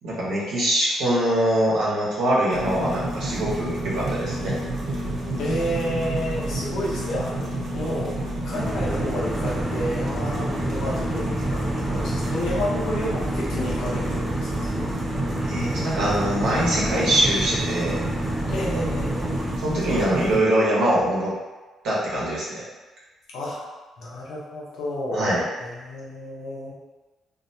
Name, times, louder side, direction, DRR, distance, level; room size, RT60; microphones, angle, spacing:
voice 1, 0.0-4.5 15.4-18.0 19.6-21.3 21.8-22.6 25.1-25.4, right 1 dB, 80° right, -7 dB, 0.9 m, -23 dB
sound 1, 2.5-20.4, right 1 dB, 60° right, 0.6 m, -30 dB
voice 2, 5.4-7.3 7.7-8.2 8.4-14.5 14.8-15.0 17.1-17.2 18.5-19.4 23.3-23.6 24.0-26.7, equal, 80° left, -5 dB, 0.7 m, -30 dB
sound 2, 8.5-19.6, right 1 dB, 10° right, 0.3 m, -30 dB
2.5 x 2.1 x 2.7 m, 1.2 s
cardioid pair, 90°, 0 cm